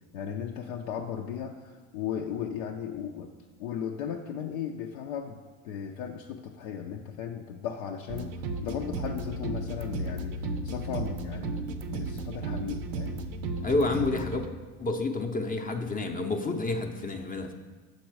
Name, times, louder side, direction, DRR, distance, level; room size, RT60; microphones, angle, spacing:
voice 1, 0.1-3.3 3.6-8.3 8.6-13.2, left 8 dB, 85° left, 1 dB, 0.5 m, -36 dB
sound 1, 8.1-14.5, right 2 dB, 75° right, 0.6 m, -34 dB
voice 2, 13.6-14.4 14.8-17.5, left 3 dB, 20° left, 4 dB, 0.5 m, -29 dB
6.4 x 4.2 x 4.6 m, 1.4 s
hypercardioid pair, 75°, 39 cm